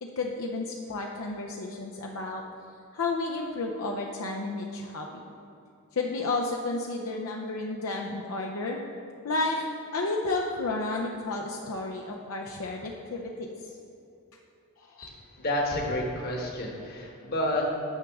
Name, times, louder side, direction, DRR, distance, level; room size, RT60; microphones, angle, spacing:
voice 1, 0.2-2.4 2.9-5.2 5.9-8.8 9.2-9.7 9.9-13.5 14.8-15.1, left 3 dB, 70° left, 0 dB, 0.6 m, -32 dB
voice 2, 15.4-17.7, left 1 dB, 45° left, 0 dB, 1.2 m, -29 dB
9.3 x 6.1 x 3.5 m, 2.7 s
head